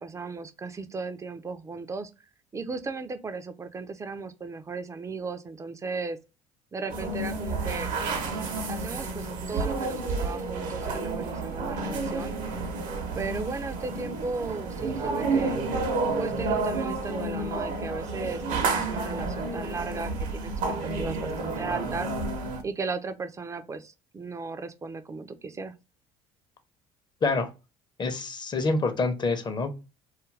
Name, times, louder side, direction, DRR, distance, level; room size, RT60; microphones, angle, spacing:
voice 1, 0.0-2.1 2.5-6.2 6.7-7.9 8.7-12.3 13.2-15.6 16.2-22.1 22.6-25.7, right 4 dB, 20° right, 0.4 m, -36 dB
sound 1, 6.9-22.6, right 3 dB, 60° right, 0.7 m, -30 dB
voice 2, 28.0-29.7, left 3 dB, 30° left, 0.7 m, -26 dB
2.4 x 2.2 x 3.2 m
hypercardioid pair, 65°, 15 cm